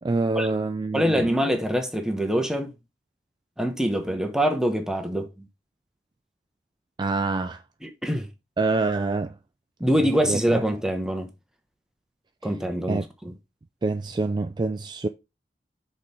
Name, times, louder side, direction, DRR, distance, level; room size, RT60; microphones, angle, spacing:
voice 1, 0.0-1.3 7.0-7.6 8.6-9.4 10.2-10.6 12.9-13.0 13.8-15.1, right 3 dB, 25° right, 0.4 m, -26 dB
voice 2, 0.9-2.7 3.6-5.5 7.8-8.3 9.8-11.3 12.4-13.3, equal, 5° right, 1.0 m, -24 dB
6.3 x 4.4 x 5.0 m
head